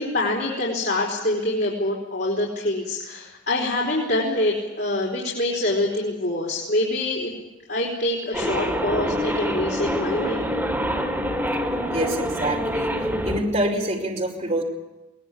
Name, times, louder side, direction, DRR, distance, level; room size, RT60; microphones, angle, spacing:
voice 1, 0.0-7.3 7.7-10.5, left 1 dB, 55° left, -3 dB, 4.6 m, -25 dB
sound 1, 8.3-13.4, equal, 10° right, 3.7 m, -26 dB
voice 2, 11.9-12.9 13.2-14.6, right 1 dB, 35° right, 0 dB, 5.0 m, -26 dB
22.5 x 20.5 x 8.6 m, 1.0 s
head